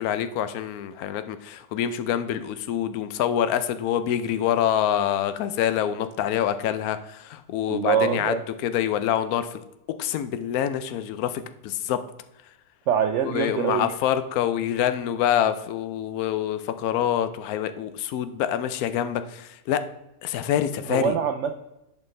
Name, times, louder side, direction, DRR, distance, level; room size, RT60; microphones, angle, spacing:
voice 1, 0.0-8.3 8.6-9.6 10.0-12.0 13.3-19.8 20.2-21.1, left 10 dB, 85° left, 11 dB, 1.0 m, -26 dB
voice 2, 7.7-8.4 12.9-13.9 20.9-21.5, right 8 dB, 65° right, 6 dB, 0.7 m, -24 dB
10.0 x 4.2 x 3.2 m, 0.89 s
omnidirectional pair, 1.5 m